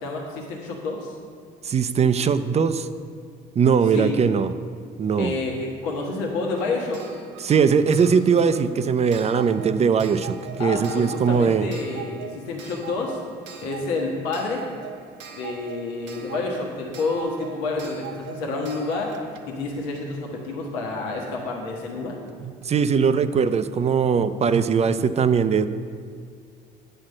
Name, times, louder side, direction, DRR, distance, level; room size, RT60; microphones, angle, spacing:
voice 1, 0.0-1.2 3.9-4.1 5.2-7.0 10.6-13.2 13.6-14.6 15.3-19.1 19.5-22.2, left 3 dB, 85° left, 0 dB, 1.2 m, -29 dB
voice 2, 1.6-2.9 3.6-4.5 5.0-5.3 7.4-11.7 22.4-25.7, right 6 dB, 30° right, 12 dB, 0.4 m, -20 dB
Clock, 6.5-21.1 22.3-22.4 22.6-22.7, right 8 dB, 65° right, 0.8 m, -42 dB
9.4 x 4.4 x 6.4 m, 2.1 s
supercardioid pair, 70°, 20 cm